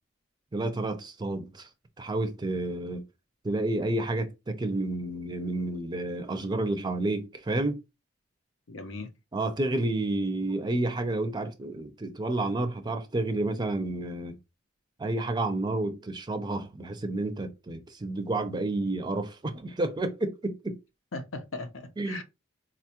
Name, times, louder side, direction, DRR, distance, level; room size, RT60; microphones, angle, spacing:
voice 1, 0.5-1.7 2.0-3.0 3.4-7.8 9.3-14.4 15.0-20.8 22.0-22.2, right 2 dB, 20° right, 0.4 m, -30 dB
voice 2, 8.7-9.1 21.1-22.2, left 3 dB, 85° left, 0.7 m, -38 dB
4.0 x 2.2 x 2.8 m
head